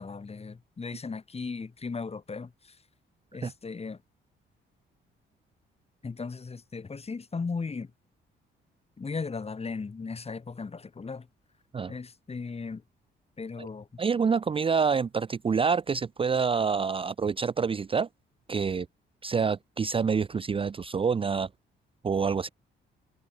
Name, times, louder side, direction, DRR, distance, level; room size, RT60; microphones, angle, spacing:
voice 1, 0.0-2.8 3.3-4.0 6.0-7.9 9.0-11.3 11.9-12.8 13.4-13.9, left 4 dB, 30° left, 5.7 m, -37 dB
voice 2, 14.0-18.1 18.5-18.9 19.2-21.5 22.0-22.5, right 5 dB, 25° right, 0.5 m, -27 dB
cardioid pair, 90°, 20 cm